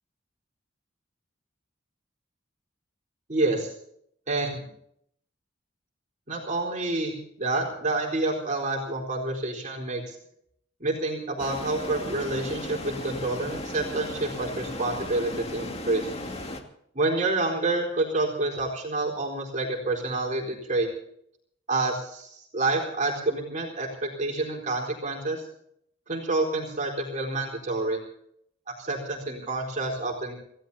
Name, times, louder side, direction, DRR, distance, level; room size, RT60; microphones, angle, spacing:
voice 1, 3.3-3.7 4.3-4.7 6.3-10.2 10.8-16.0 16.9-20.9 21.7-25.4 26.1-28.0 28.8-30.3, right 2 dB, 40° right, 0 dB, 4.1 m, -28 dB
sound 1, 11.4-16.6, left 1 dB, 35° left, 2.2 m, -36 dB
27.5 x 17.0 x 2.8 m, 0.69 s
head